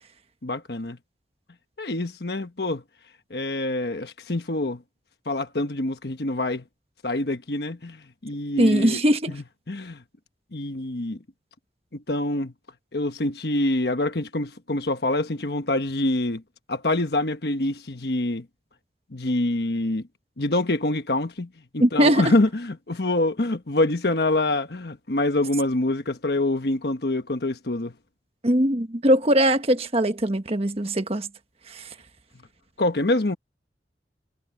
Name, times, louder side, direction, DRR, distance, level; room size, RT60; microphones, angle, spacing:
voice 1, 0.4-1.0 1.8-2.8 3.3-4.8 5.3-6.6 7.0-9.0 9.3-10.0 10.5-11.2 11.9-12.5 12.9-16.4 16.7-18.4 19.1-20.0 20.4-27.9 32.8-33.4, left 2 dB, 65° left, 1.2 m, -25 dB
voice 2, 8.6-9.3 21.8-22.3 28.4-31.3 31.7-31.8, right 1 dB, 35° right, 1.4 m, -21 dB
head